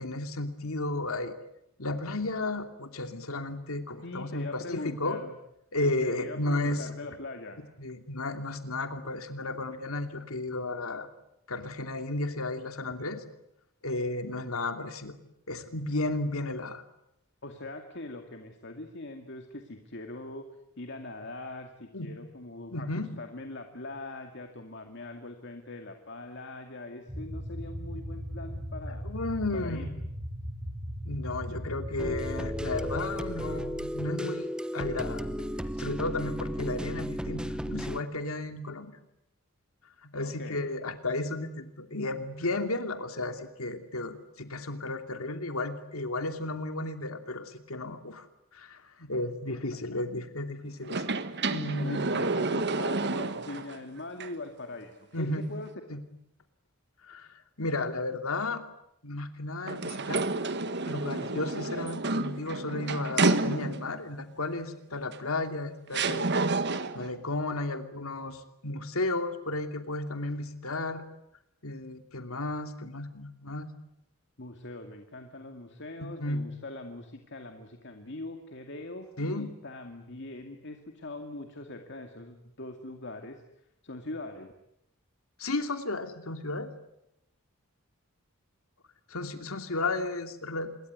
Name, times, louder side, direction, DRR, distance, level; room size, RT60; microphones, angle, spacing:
voice 1, 0.0-1.3 1.8-5.2 5.7-6.9 7.8-11.1 11.5-13.2 13.8-15.1 15.5-16.8 21.9-22.1 22.7-23.2 28.9-29.9 31.0-35.4 35.8-38.9 40.0-48.3 48.5-51.1 51.5-52.1 55.1-55.5 55.9-56.0 57.1-58.6 59.0-60.3 60.8-66.3 66.9-71.0 71.6-73.7 76.0-76.5 79.2-79.5 85.4-86.7 89.1-90.7, left 2 dB, 85° left, 8 dB, 2.8 m, -33 dB
voice 2, 4.0-5.3 5.8-7.6 17.4-20.5 20.8-22.9 23.2-29.0 29.5-29.9 40.2-40.6 51.8-55.7 74.4-83.4 83.8-84.5, left 2 dB, 55° left, 5 dB, 2.3 m, -42 dB
sound 1, 27.1-33.0, equal, 20° right, 3.5 m, -38 dB
sound 2, 32.0-38.0, equal, 5° right, 1.0 m, -34 dB
sound 3, 50.8-53.8 54.2-54.3 59.7-64.0 65.1-65.2 65.9-67.1, right 3 dB, 55° right, 1.6 m, -30 dB
26.5 x 22.5 x 9.6 m, 0.81 s
head